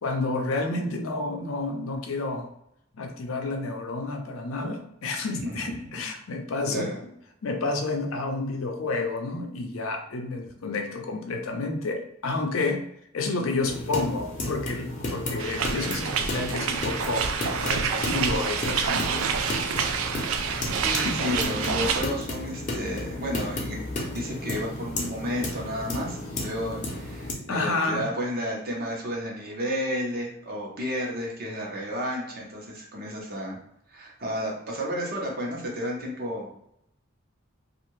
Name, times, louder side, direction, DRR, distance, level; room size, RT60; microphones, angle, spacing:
voice 1, 0.0-2.5 2.9-6.9 7.4-12.8 13.1-17.3 17.6-19.3 21.1-21.8 27.5-28.1, left 3 dB, 80° left, 3 dB, 0.5 m, -30 dB
voice 2, 6.7-7.0 20.8-23.8 24.1-33.6 33.9-36.5, equal, 45° right, -2 dB, 0.8 m, -32 dB
sound 1, 13.6-27.3, left 1 dB, 40° left, 0.6 m, -33 dB
sound 2, 15.4-22.0, right 6 dB, 80° right, 0.3 m, -28 dB
2.7 x 2.4 x 3.0 m, 0.77 s
head